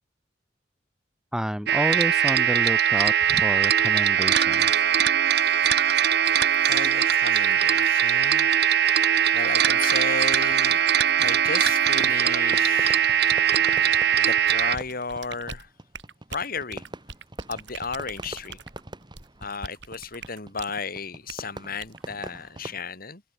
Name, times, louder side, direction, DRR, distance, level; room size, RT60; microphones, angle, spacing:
voice 1, 1.3-4.9, equal, 5° right, 0.7 m, -30 dB
sound 1, 1.7-14.8, right 9 dB, 65° right, 1.1 m, -21 dB
voice 2, 5.3-13.7 14.2-15.7 16.3-16.8 17.5-18.6 19.4-23.2, left 4 dB, 55° left, 3.3 m, -35 dB
Fireworks, 10.7-22.8, right 2 dB, 25° right, 2.0 m, -43 dB
sound 2, 14.5-20.8 21.3-21.5 21.8-22.0, right 5 dB, 85° right, 5.1 m, -42 dB
head